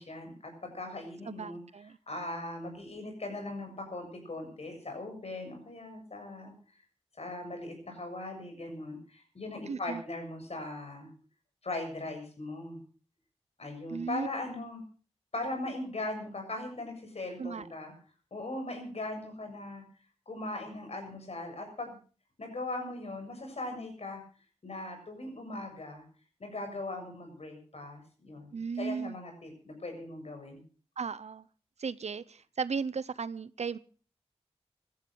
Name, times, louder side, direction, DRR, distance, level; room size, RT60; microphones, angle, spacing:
voice 1, 0.0-1.6 2.1-6.5 7.2-11.1 11.6-12.8 13.6-14.8 15.3-17.9 18.3-19.8 20.3-22.0 22.4-24.2 24.6-26.0 26.4-30.6, left 2 dB, 70° left, 5 dB, 7.1 m, -39 dB
voice 2, 1.3-2.0 9.7-10.0 13.9-14.3 17.4-17.7 28.5-29.2 31.0-31.4 31.8-33.8, right 5 dB, 85° right, 17 dB, 0.7 m, -35 dB
17.0 x 13.0 x 6.2 m, 0.41 s
wide cardioid pair, 75°, 11 cm